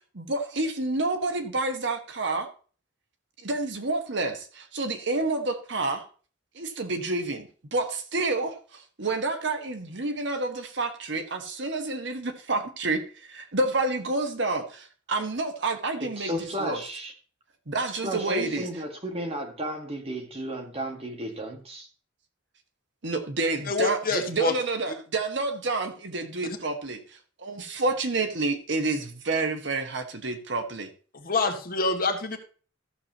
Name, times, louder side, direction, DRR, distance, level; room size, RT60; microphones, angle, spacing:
voice 1, 0.2-2.5 3.4-6.0 6.5-16.8 17.7-18.7 23.0-27.0 27.4-30.9, right 2 dB, 65° right, 6 dB, 1.3 m, -29 dB
voice 2, 16.0-17.1 18.0-21.9, right 1 dB, 30° right, 2 dB, 1.9 m, -33 dB
voice 3, 23.6-24.5 31.1-32.4, left 3 dB, 50° left, 4 dB, 1.6 m, -26 dB
14.5 x 7.0 x 3.0 m, 0.39 s
head